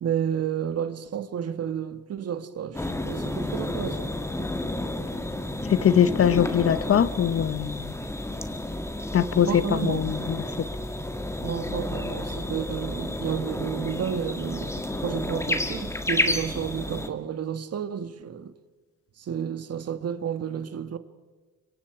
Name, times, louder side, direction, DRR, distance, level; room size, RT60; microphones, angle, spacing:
voice 1, 0.0-4.2 9.3-10.3 11.4-18.5 19.2-21.0, right 8 dB, 55° right, 1.6 m, -31 dB
sound 1, 2.7-17.1, left 1 dB, 10° left, 1.9 m, -31 dB
voice 2, 5.7-8.0 9.1-10.7, left 9 dB, 50° left, 0.9 m, -22 dB
26.0 x 23.5 x 4.9 m
cardioid pair, 90°, 30 cm